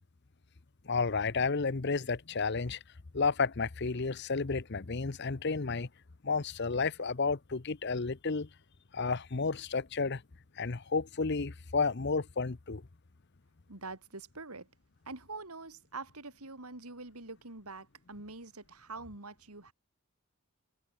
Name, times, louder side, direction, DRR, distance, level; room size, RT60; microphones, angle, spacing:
voice 1, 0.8-2.8 3.1-5.9 6.2-8.5 8.9-10.2 10.6-12.8, left 4 dB, 50° left, 0.8 m, -31 dB
voice 2, 13.7-14.7 15.1-19.7, right 3 dB, 90° right, 4.0 m, -45 dB
head